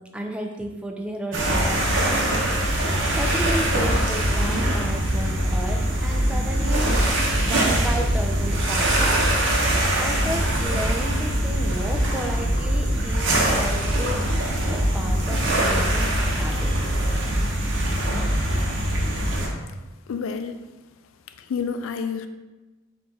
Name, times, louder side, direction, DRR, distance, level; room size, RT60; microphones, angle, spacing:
voice 1, 0.0-2.3 3.2-7.2 7.4-9.3 10.0-14.3 14.7-16.7, right 1 dB, 5° right, 2 dB, 0.3 m, -33 dB
sound 1, 1.3-19.5, right 1 dB, 65° right, 0.8 m, -22 dB
voice 2, 20.1-20.6 21.4-22.3, left 6 dB, 85° left, 9 dB, 0.4 m, -29 dB
4.4 x 2.5 x 4.0 m, 1.2 s
head